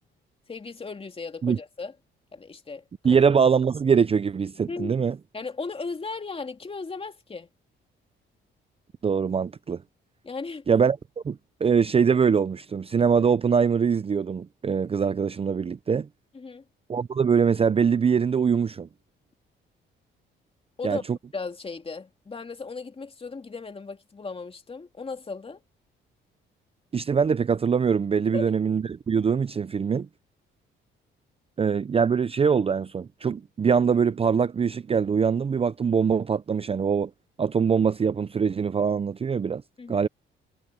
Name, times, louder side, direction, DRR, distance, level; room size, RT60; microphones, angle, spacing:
voice 1, 0.5-1.9 2.3-3.2 4.7-5.0 5.3-7.5 10.2-10.6 16.3-16.6 20.8-21.0 21.3-25.6 28.3-28.5 39.8-40.1, left 4 dB, 30° left, 2.6 m, -36 dB
voice 2, 3.0-5.2 9.0-9.8 10.7-11.0 11.2-16.1 16.9-18.9 20.8-21.0 26.9-30.1 31.6-37.1 37.4-39.6 39.9-40.1, right 6 dB, 30° right, 0.5 m, -23 dB
cardioid pair, 90°, 20 cm